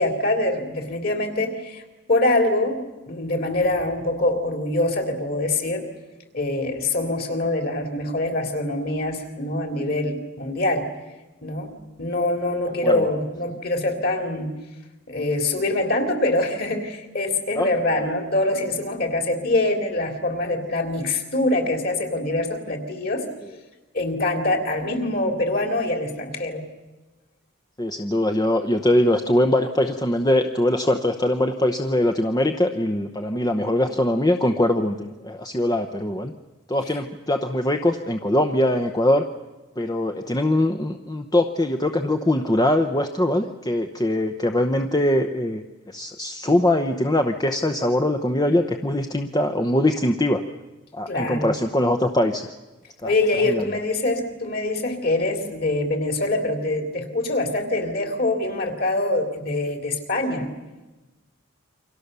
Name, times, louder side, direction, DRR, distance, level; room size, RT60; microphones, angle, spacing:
voice 1, 0.0-1.8 2.1-5.9 6.3-10.9 11.4-14.6 15.1-23.3 23.9-26.6 51.1-51.5 53.0-60.5, left 2 dB, 45° left, 5 dB, 3.5 m, -24 dB
voice 2, 27.8-36.3 36.7-39.2 39.8-50.4 50.9-52.5 53.0-53.1 53.4-53.8, left 1 dB, 20° left, 5 dB, 0.8 m, -22 dB
28.5 x 24.5 x 6.8 m, 1.1 s
head